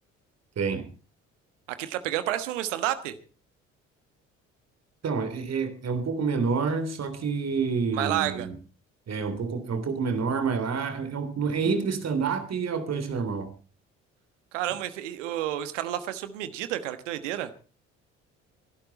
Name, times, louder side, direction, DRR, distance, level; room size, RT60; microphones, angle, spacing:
voice 1, 1.8-3.1 7.9-8.5 14.5-17.5, right 12 dB, 70° right, 12 dB, 1.4 m, -30 dB
voice 2, 5.0-8.5 9.1-13.5, right 5 dB, 45° right, 9 dB, 3.3 m, -28 dB
24.5 x 11.5 x 4.2 m, 0.36 s
figure-of-eight pair, 50°, 38 cm